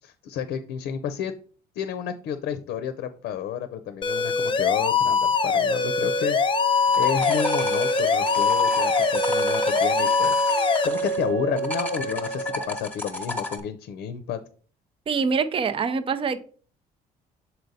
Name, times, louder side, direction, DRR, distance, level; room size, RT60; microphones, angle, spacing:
voice 1, 0.0-1.3 1.7-6.7 6.9-14.4, left 8 dB, 75° left, 10 dB, 0.6 m, -31 dB
sound 1, 4.0-10.9, left 6 dB, 30° left, 0.5 m, -23 dB
Wind instrument woodwind instrument, 5.3-13.0, right 6 dB, 80° right, 1.9 m, -30 dB
sound 2, 6.6-11.2 11.6-13.6, left 2 dB, 10° left, 1.0 m, -33 dB
voice 2, 15.1-16.4, right 5 dB, 30° right, 11 dB, 0.5 m, -24 dB
6.6 x 4.3 x 4.1 m, 0.43 s
cardioid pair, 110°, 17 cm